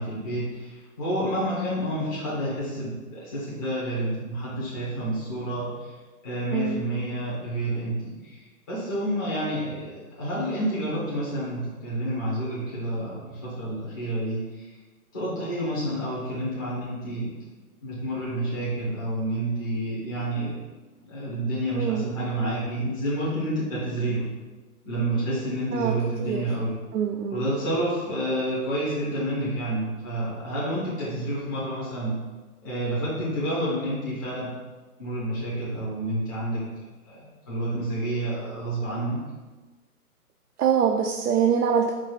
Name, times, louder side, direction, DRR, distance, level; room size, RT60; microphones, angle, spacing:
voice 1, 0.0-5.9 6.2-7.9 8.2-14.7 15.1-17.3 17.8-20.6 21.0-24.3 24.8-26.8 27.3-32.2 32.6-34.5 35.0-36.6 37.0-39.2, right 1 dB, 15° left, -10 dB, 0.6 m, -29 dB
voice 2, 6.5-6.8 21.7-22.0 25.7-26.4 26.9-27.4 40.6-41.9, right 7 dB, 75° right, 3 dB, 0.6 m, -24 dB
4.6 x 2.3 x 4.7 m, 1.2 s
hypercardioid pair, 145°, 46 cm